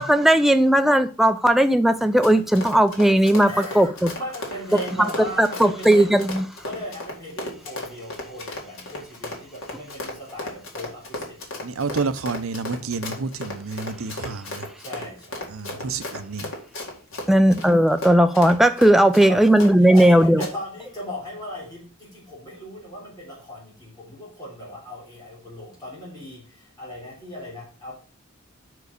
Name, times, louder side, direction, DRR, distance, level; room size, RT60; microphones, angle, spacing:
voice 1, 0.1-4.1 5.4-6.4 17.3-20.4, right 1 dB, ahead, 0.4 m, -17 dB
Run, 1.9-20.1 20.4-20.5, left 2 dB, 65° left, 2.3 m, -35 dB
voice 2, 3.4-6.2 6.6-11.4 11.7-12.1 14.8-15.9 17.1-17.4 19.3-27.9, left 1 dB, 20° left, 3.3 m, -38 dB
voice 3, 11.6-14.7 15.5-16.5, right 4 dB, 75° right, 0.7 m, -29 dB
6.0 x 4.7 x 6.5 m
head